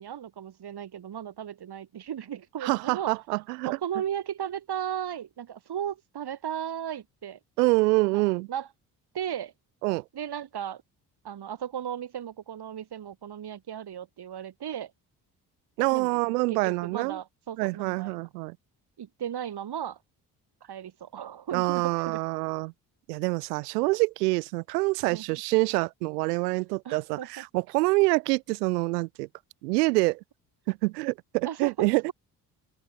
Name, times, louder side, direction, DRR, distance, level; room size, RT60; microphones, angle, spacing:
voice 1, 0.0-3.1 3.6-7.4 8.1-8.2 8.5-8.7 9.1-9.5 10.1-10.8 11.2-14.9 15.9-16.2 16.5-18.2 19.0-20.0 20.6-22.2 25.1-25.4 26.8-27.4 31.4-32.1, right 9 dB, 55° right, 5.9 m, -35 dB
voice 2, 2.6-3.8 7.6-8.5 9.8-10.0 15.8-17.2 17.6-18.6 21.5-22.7 23.1-29.3 29.6-30.2 30.7-32.1, right 24 dB, 85° right, 1.2 m, -26 dB
open air
hypercardioid pair, 50°, 46 cm